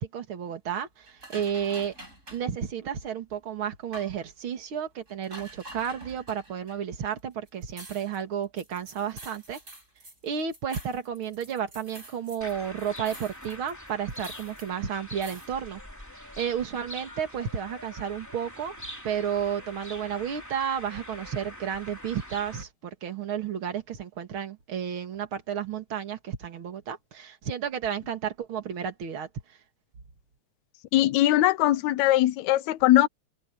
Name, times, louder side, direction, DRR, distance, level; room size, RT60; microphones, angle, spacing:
voice 1, 0.0-1.9 2.3-9.6 10.2-15.8 16.4-18.8 19.0-29.3, right 8 dB, 45° right, 2.7 m, -32 dB
sound 1, 1.1-2.5 3.3-3.4 3.9-4.2 5.1-6.8 7.2-7.3 7.5-12.5 12.8-14.7 15.2-15.5, right 1 dB, 25° right, 7.4 m, -47 dB
sound 2, 12.4-22.6, left 1 dB, 5° left, 2.7 m, -44 dB
voice 2, 30.9-33.1, left 14 dB, 75° left, 1.9 m, -21 dB
omnidirectional pair, 3.4 m